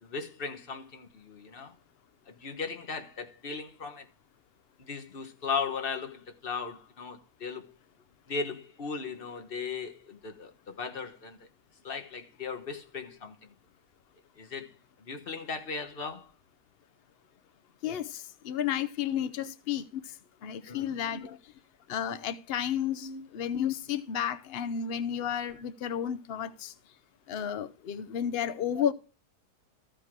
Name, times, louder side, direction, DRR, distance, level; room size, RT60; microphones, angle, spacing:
voice 1, 0.0-1.7 2.3-4.1 4.8-7.7 8.3-11.5 11.8-13.5 14.4-14.7 15.0-16.3 19.4-19.5 20.7-21.2 23.0-23.2 28.8-28.9, left 5 dB, 40° left, 1.2 m, -37 dB
voice 2, 17.8-20.2 20.4-21.3 21.9-26.7 27.3-28.9, left 9 dB, 75° left, 0.5 m, -32 dB
14.0 x 5.0 x 4.6 m
omnidirectional pair, 1.7 m